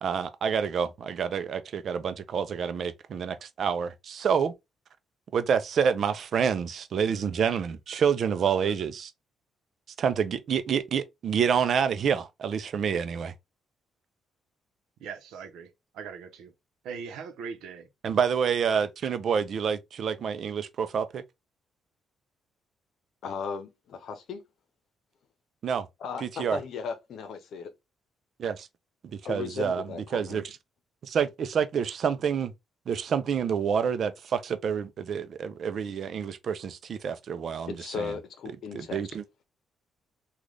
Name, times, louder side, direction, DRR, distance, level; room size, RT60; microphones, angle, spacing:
voice 1, 0.0-4.5 5.3-9.1 10.0-13.3 18.0-21.2 25.6-25.9 26.2-26.6 28.4-28.7 29.1-29.8 30.1-30.6 31.0-32.5 32.9-38.1 38.7-39.2, right 7 dB, 60° right, 0.5 m, -28 dB
voice 2, 15.0-16.5 16.8-17.8, right 6 dB, 85° right, 0.8 m, -40 dB
voice 3, 23.2-24.4 26.0-27.7 29.2-30.4 37.7-39.0, left 6 dB, 70° left, 0.8 m, -36 dB
3.2 x 2.4 x 3.7 m
cardioid pair, 90°, 0 cm